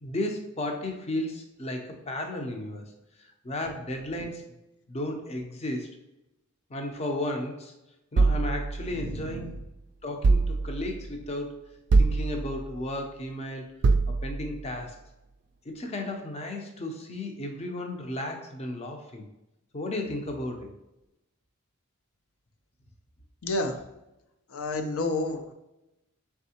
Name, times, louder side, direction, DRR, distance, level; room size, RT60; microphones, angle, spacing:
voice 1, 0.0-2.8 3.4-4.4 4.9-5.9 6.7-7.7 8.1-9.6 10.0-11.6 12.0-13.6 14.2-14.9 15.7-19.2 19.7-20.7, left 1 dB, 30° left, 4 dB, 0.5 m, -34 dB
sound 1, 8.2-9.6 10.2-11.1 11.9-12.8 13.8-14.6, right 3 dB, 55° right, 0.3 m, -24 dB
voice 2, 8.9-9.5 23.4-23.8 24.5-25.5, left 2 dB, 90° left, 6 dB, 0.5 m, -30 dB
4.1 x 3.5 x 2.8 m, 0.92 s
head